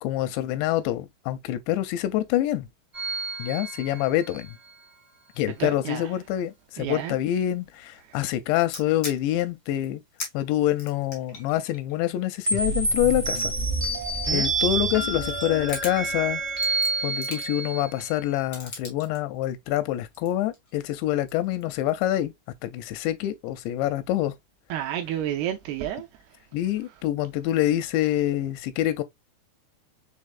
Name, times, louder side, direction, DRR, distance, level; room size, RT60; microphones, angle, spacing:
voice 1, 0.0-2.7 3.4-4.6 5.4-10.0 10.3-13.5 14.3-16.4 17.0-22.3 22.6-24.3 26.5-29.0, left 13 dB, 85° left, 2.9 m, -26 dB
sound 1, 2.9-4.5 12.4-18.2, right 3 dB, 40° right, 0.4 m, -28 dB
voice 2, 5.6-6.1 6.8-7.2 14.3-14.5 24.7-26.1, right 11 dB, 85° right, 2.3 m, -30 dB
sound 2, 8.6-9.4 9.8-9.9 10.2-10.3 10.7-13.1 13.6-14.8 15.1-16.0 16.5-17.7 18.5-19.2 19.9-20.9 21.3-21.6, left 3 dB, 70° left, 0.7 m, -39 dB
6.5 x 3.2 x 2.4 m
omnidirectional pair, 5.0 m